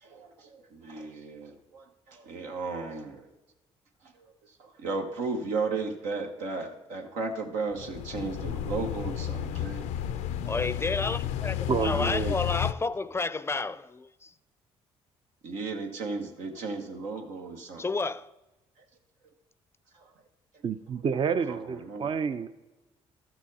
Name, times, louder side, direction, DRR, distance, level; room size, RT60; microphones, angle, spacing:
voice 1, 0.0-3.3 4.1-4.3 4.6-10.1 15.4-17.8 20.0-20.1 21.4-22.1, right 4 dB, 90° right, 1.4 m, -35 dB
sound 1, 7.7-12.7, left 11 dB, 85° left, 0.5 m, -32 dB
voice 2, 10.4-14.3 17.8-18.3, left 3 dB, 20° left, 0.3 m, -31 dB
voice 3, 11.7-12.4 20.6-22.5, right 6 dB, 45° right, 0.5 m, -29 dB
13.5 x 6.2 x 4.2 m
supercardioid pair, 75°, 12 cm